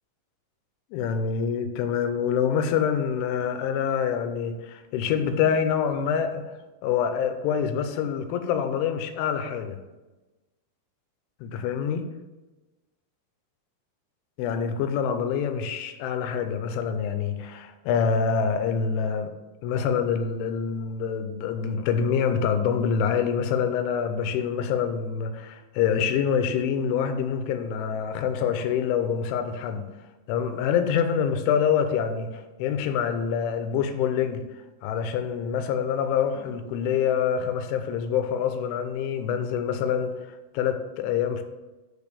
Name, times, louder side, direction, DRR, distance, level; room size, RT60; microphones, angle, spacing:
voice 1, 0.9-6.4 6.8-9.8 11.4-12.1 14.4-19.3 19.6-29.8 30.3-34.4 34.8-40.1 40.5-41.4, left 7 dB, 85° left, 8 dB, 3.0 m, -26 dB
6.7 x 5.1 x 6.7 m, 1.1 s
omnidirectional pair, 5.5 m